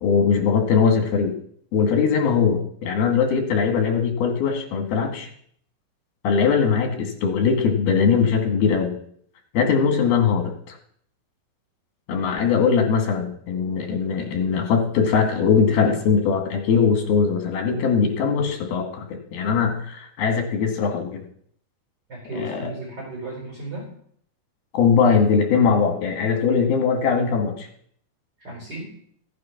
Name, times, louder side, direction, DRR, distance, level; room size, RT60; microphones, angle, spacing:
voice 1, 0.0-1.3 1.7-5.3 6.2-8.9 9.5-10.8 12.1-21.2 22.3-22.7 24.7-27.7, left 6 dB, 80° left, 4 dB, 4.0 m, -21 dB
voice 2, 22.1-23.9 28.4-28.9, right 2 dB, 30° right, -2 dB, 4.6 m, -34 dB
15.5 x 8.5 x 5.9 m, 0.62 s
omnidirectional pair, 4.3 m